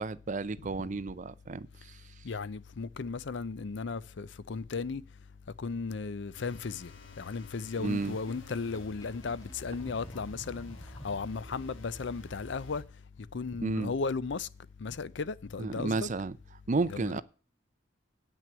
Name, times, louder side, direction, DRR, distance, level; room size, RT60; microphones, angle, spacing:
voice 1, 0.0-2.0 7.8-8.2 13.6-13.9 15.6-16.4 16.7-17.2, right 3 dB, 40° right, 0.5 m, -32 dB
voice 2, 2.2-5.0 5.6-6.9 7.2-10.8 11.0-12.8 13.2-14.5 14.8-16.1 16.9-17.2, left 4 dB, 65° left, 0.5 m, -35 dB
sound 1, 6.3-12.9, left 1 dB, 85° left, 1.5 m, -49 dB
Sink (filling or washing), 7.9-11.7, left 1 dB, 20° left, 0.9 m, -51 dB
9.2 x 6.0 x 8.1 m
head